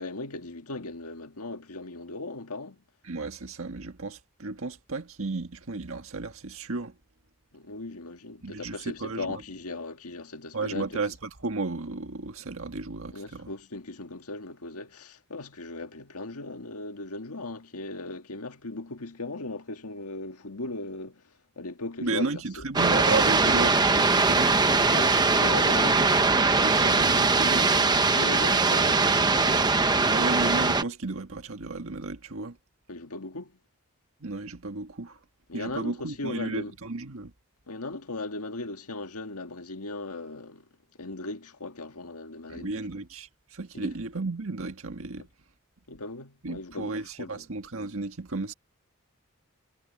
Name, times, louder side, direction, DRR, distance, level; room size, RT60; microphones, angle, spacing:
voice 1, 0.0-2.8 7.5-11.0 13.1-22.6 24.8-26.2 28.1-29.8 32.9-33.6 35.5-36.7 37.7-40.7 41.0-42.8 43.7-43.9 45.2-45.3 45.9-47.4, left 2 dB, 85° left, 1.8 m, -38 dB
voice 2, 3.0-7.0 8.4-9.3 10.5-13.5 22.0-24.6 26.6-27.9 30.0-32.6 34.2-35.2 35.5-37.3 42.5-45.3 46.4-48.5, right 3 dB, 65° right, 1.6 m, -33 dB
sound 1, 22.7-30.8, right 3 dB, 20° right, 0.9 m, -21 dB
head